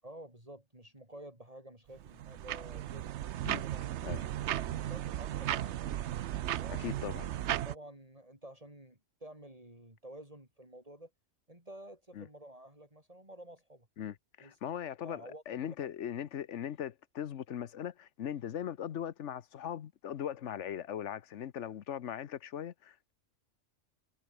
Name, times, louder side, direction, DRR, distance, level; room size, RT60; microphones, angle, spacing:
voice 1, 0.0-3.1 4.6-5.9 6.5-11.1 11.5-13.9 14.4-14.6 15.0-15.8, right 1 dB, 30° right, 5.9 m, -51 dB
sound 1, 2.0-7.8, right 12 dB, 70° right, 0.9 m, -36 dB
voice 2, 6.8-7.3 12.1-12.3 14.0-23.1, left 9 dB, 70° left, 1.1 m, -39 dB
omnidirectional pair, 1.3 m